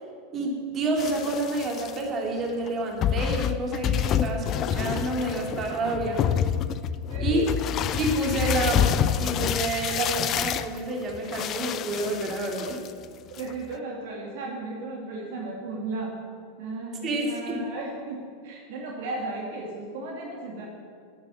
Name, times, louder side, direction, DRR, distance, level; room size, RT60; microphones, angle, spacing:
voice 1, 0.3-6.3 7.2-7.5 8.0-12.8 17.0-17.6, right 2 dB, 30° right, 0 dB, 2.7 m, -29 dB
sound 1, 1.0-2.0 2.7-2.8 3.0-13.0 13.4-13.7, left 9 dB, 35° left, 0.5 m, -28 dB
voice 2, 7.1-7.4 13.4-16.1 16.6-20.7, right 2 dB, 55° right, -1 dB, 2.3 m, -35 dB
11.0 x 10.5 x 7.7 m, 2.1 s
figure-of-eight pair, 85°, 0 cm